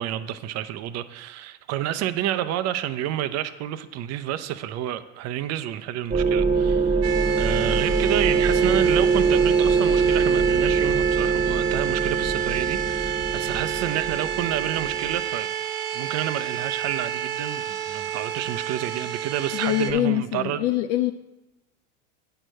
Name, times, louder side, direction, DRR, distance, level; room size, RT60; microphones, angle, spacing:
voice 1, 0.0-7.1 7.4-15.5 15.9-20.7, right 12 dB, 45° right, 0.6 m, -29 dB
sound 1, 6.1-15.2, right 5 dB, 20° right, 1.3 m, -23 dB
sound 2, 7.0-19.9, right 10 dB, 75° right, 0.9 m, -30 dB
voice 2, 19.5-21.1, left 14 dB, 70° left, 0.5 m, -24 dB
8.8 x 4.6 x 6.4 m
supercardioid pair, 100°, 36 cm